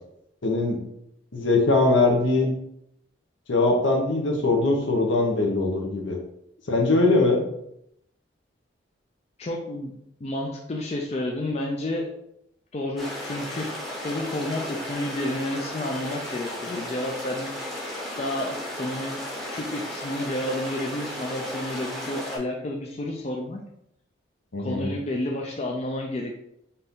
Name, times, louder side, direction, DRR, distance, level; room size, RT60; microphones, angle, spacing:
voice 1, 0.4-0.8 1.3-2.5 3.5-6.2 6.7-7.4 24.5-24.9, left 2 dB, 75° left, 1 dB, 0.9 m, -21 dB
voice 2, 9.4-9.9 10.2-12.1 12.7-13.7 14.0-17.5 18.2-19.2 19.5-23.6 24.6-26.3, left 1 dB, 35° left, 0 dB, 0.4 m, -30 dB
sound 1, 13.0-22.4, left 1 dB, ahead, 0.7 m, -35 dB
4.2 x 2.6 x 3.6 m, 0.77 s
head